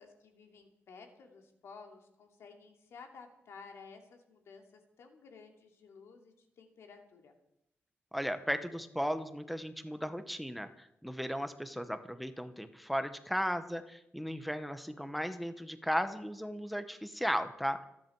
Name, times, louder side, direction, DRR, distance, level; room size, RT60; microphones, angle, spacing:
voice 1, 0.0-7.3, left 5 dB, 90° left, 3 dB, 2.7 m, -54 dB
voice 2, 8.1-17.8, equal, ahead, 9 dB, 0.9 m, -36 dB
26.5 x 10.5 x 4.6 m, 0.79 s
wide cardioid pair, 145°, 4 cm